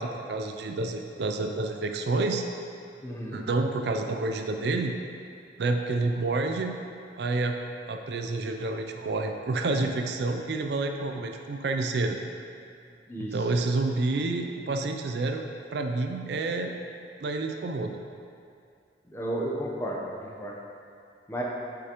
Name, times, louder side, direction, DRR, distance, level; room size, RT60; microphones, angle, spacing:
voice 1, 0.0-2.4 3.3-4.9 5.6-6.7 7.2-7.6 7.9-12.2 13.2-15.4 15.7-16.7 17.2-18.0, right 3 dB, 65° right, 4 dB, 0.4 m, -29 dB
voice 2, 3.0-3.4 13.1-13.4 19.1-20.6 21.3-21.4, right 1 dB, 15° left, -3 dB, 0.7 m, -33 dB
6.4 x 5.9 x 3.0 m, 2.4 s
head